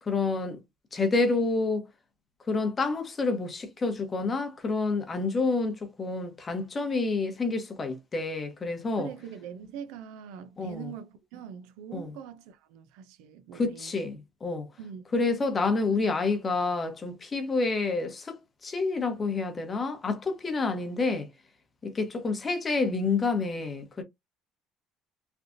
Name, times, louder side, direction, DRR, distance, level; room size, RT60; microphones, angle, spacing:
voice 1, 0.0-0.6 0.9-1.9 2.5-9.1 10.6-10.9 11.9-12.1 13.5-14.7 15.1-21.3 21.8-24.0, left 3 dB, 25° left, 0.9 m, -28 dB
voice 2, 9.0-14.0 14.8-15.0, right 8 dB, 85° right, 0.6 m, -43 dB
3.4 x 2.4 x 2.6 m
cardioid pair, 115°, 0 cm